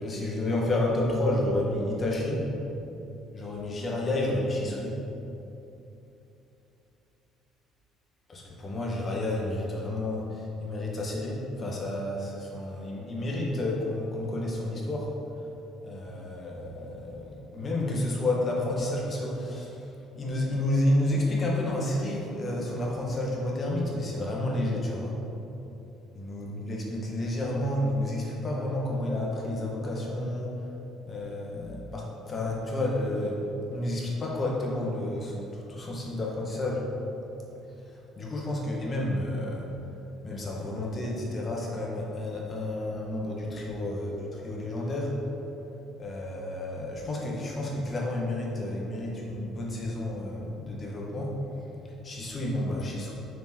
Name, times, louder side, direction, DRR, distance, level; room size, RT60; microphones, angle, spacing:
voice 1, 0.0-2.7 3.3-5.0 8.3-15.5 15.8-25.2 26.1-30.7 31.1-36.9 37.7-39.7 40.2-45.2 46.0-51.4 51.8-53.1, left 1 dB, 35° left, -2 dB, 1.5 m, -30 dB
6.6 x 4.6 x 4.6 m, 3.0 s
supercardioid pair, 85°, 0 cm